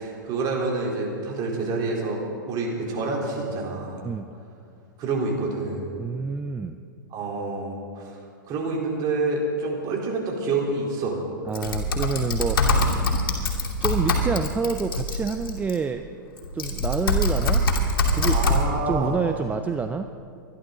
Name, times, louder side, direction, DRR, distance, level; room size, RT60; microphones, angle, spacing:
voice 1, 0.0-4.0 5.0-5.9 7.1-8.2 8.5-11.2 18.3-19.2, right 3 dB, 35° right, -2 dB, 3.9 m, -27 dB
voice 2, 6.0-6.8 11.5-13.0 13.8-16.0 16.5-17.6 18.1-18.6 18.9-20.1, right 5 dB, 15° right, 8 dB, 0.5 m, -28 dB
Typing, 11.5-15.7 16.4-18.6, left 1 dB, 80° left, 2.6 m, -23 dB
24.5 x 11.5 x 4.0 m, 2.4 s
hypercardioid pair, 110°, 11 cm